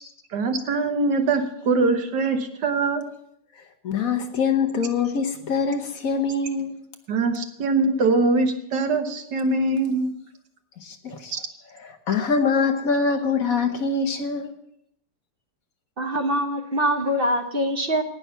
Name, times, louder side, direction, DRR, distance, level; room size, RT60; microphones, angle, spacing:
voice 1, 0.3-3.0 7.1-10.1 11.3-11.4, right 3 dB, 75° right, 1.8 m, -22 dB
voice 2, 3.8-6.8 10.8-11.3 11.8-14.5, left 5 dB, 55° left, 1.3 m, -24 dB
voice 3, 16.0-18.0, equal, 40° right, 1.0 m, -23 dB
18.5 x 6.2 x 5.6 m
omnidirectional pair, 1.9 m